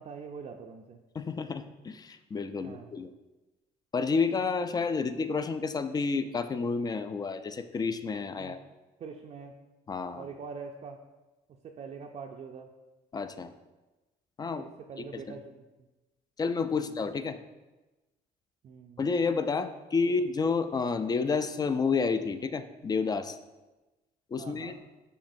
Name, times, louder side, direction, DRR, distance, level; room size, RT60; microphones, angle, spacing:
voice 1, 0.0-1.0 2.6-2.9 8.4-8.6 9.0-9.5 10.1-11.0 11.6-12.7 14.6-15.6 16.7-17.0 18.6-19.0 20.1-20.2 24.4-24.8, right 5 dB, 40° right, 1 dB, 0.4 m, -44 dB
voice 2, 1.1-3.1 3.9-8.6 9.9-10.3 13.1-13.5 14.4-14.7 15.1-15.4 16.4-17.4 19.0-23.4 24.3-24.7, left 4 dB, 25° left, 10 dB, 0.4 m, -30 dB
10.0 x 3.6 x 2.6 m, 1.1 s
cardioid pair, 110°, 17 cm